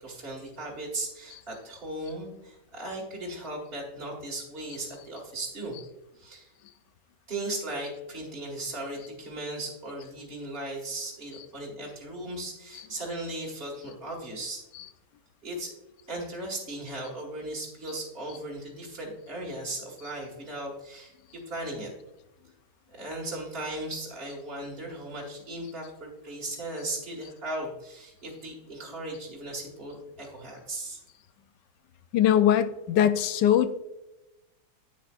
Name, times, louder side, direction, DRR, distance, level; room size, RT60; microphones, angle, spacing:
voice 1, 0.0-5.8 6.1-6.5 7.3-14.6 15.4-15.7 16.1-21.9 22.9-31.0, right 1 dB, 35° right, -4 dB, 2.1 m, -37 dB
voice 2, 32.1-33.7, left 10 dB, 90° left, 11 dB, 1.3 m, -21 dB
10.5 x 8.9 x 2.5 m, 0.96 s
omnidirectional pair, 1.8 m